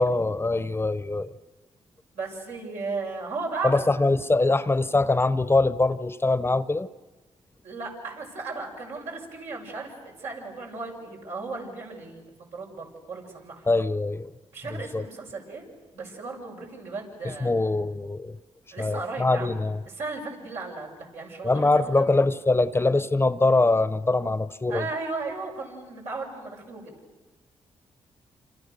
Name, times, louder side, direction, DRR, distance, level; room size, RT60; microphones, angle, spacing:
voice 1, 0.0-1.3 3.6-6.9 13.7-14.3 14.7-15.1 17.2-18.4 18.8-19.8 21.4-24.9, left 2 dB, 20° left, 15 dB, 0.8 m, -23 dB
voice 2, 2.1-3.8 7.6-13.6 14.5-15.6 15.9-17.5 18.7-19.6 19.9-22.0 24.7-26.9, right 3 dB, 85° right, -2 dB, 7.0 m, -35 dB
28.0 x 27.5 x 6.8 m, 1.2 s
cardioid pair, 70°, 12 cm